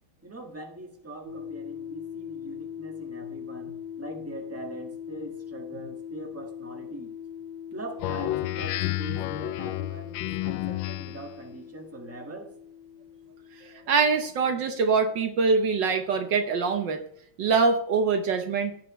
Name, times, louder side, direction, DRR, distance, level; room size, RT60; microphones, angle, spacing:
voice 1, 0.2-7.1 7.7-12.5, right 2 dB, 10° right, 2 dB, 1.5 m, -42 dB
sound 1, 1.2-15.2, left 8 dB, 90° right, 3.4 m, -41 dB
Speech synthesizer, 8.0-11.3, left 16 dB, 75° left, 1.2 m, -31 dB
voice 2, 13.6-17.0 17.4-18.9, right 4 dB, 70° right, 7 dB, 1.5 m, -24 dB
17.0 x 5.9 x 3.1 m, 0.66 s
omnidirectional pair, 2.2 m